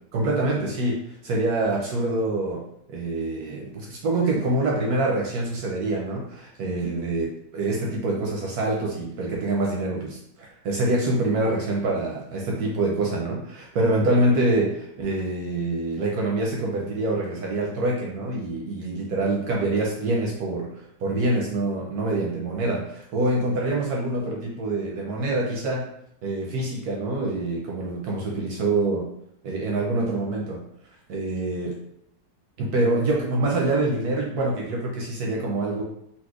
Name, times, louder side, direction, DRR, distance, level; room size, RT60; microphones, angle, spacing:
voice 1, 0.1-2.6 2.9-25.9 26.2-29.1 29.4-30.6 31.1-31.8 32.6-35.8, right 2 dB, 70° right, -2 dB, 1.0 m, -25 dB
4.1 x 2.4 x 2.4 m, 0.74 s
omnidirectional pair, 1.9 m